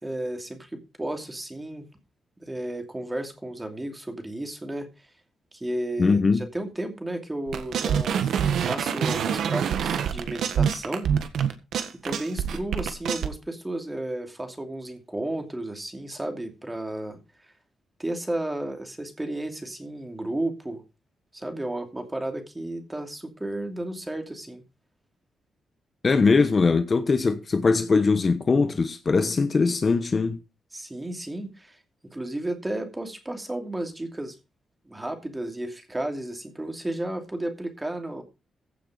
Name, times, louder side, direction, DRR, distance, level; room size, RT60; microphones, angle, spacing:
voice 1, 0.0-1.9 2.4-5.1 5.5-11.1 12.0-17.5 18.0-20.8 21.3-24.6 30.7-31.8 32.1-34.4 34.8-38.2, right 1 dB, 10° right, 2.7 m, -33 dB
voice 2, 6.0-6.4 26.0-30.4, left 4 dB, 30° left, 1.1 m, -21 dB
sound 1, 7.5-13.3, right 8 dB, 75° right, 1.6 m, -26 dB
15.5 x 6.7 x 5.0 m
cardioid pair, 130°, 0 cm